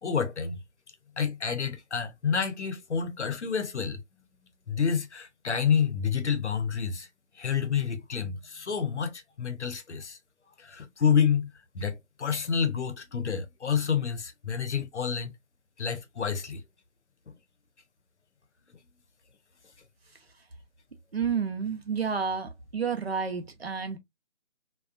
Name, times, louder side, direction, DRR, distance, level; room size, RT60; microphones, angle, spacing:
voice 1, 0.0-0.6 1.2-4.0 4.7-7.1 7.4-10.2 10.6-11.5 11.7-15.3 15.8-16.6 17.3-17.4, left 7 dB, 65° left, 0.7 m, -28 dB
voice 2, 21.1-24.0, right 6 dB, 55° right, 0.7 m, -30 dB
2.4 x 2.2 x 2.3 m
figure-of-eight pair, 180°, 37 cm